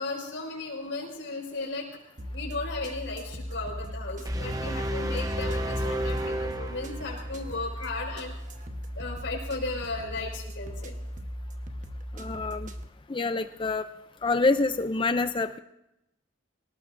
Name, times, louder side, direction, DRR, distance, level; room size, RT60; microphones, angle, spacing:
voice 1, 0.0-1.9 2.3-8.3 9.0-10.9, left 3 dB, 70° left, -1 dB, 5.3 m, -35 dB
sound 1, 2.2-12.8, equal, 40° right, 1.1 m, -38 dB
sound 2, 4.3-7.5, equal, 20° right, 0.8 m, -31 dB
voice 2, 12.1-12.7 13.1-13.9 14.2-15.6, left 3 dB, 25° left, 10 dB, 0.4 m, -26 dB
26.5 x 18.5 x 2.6 m, 0.87 s
head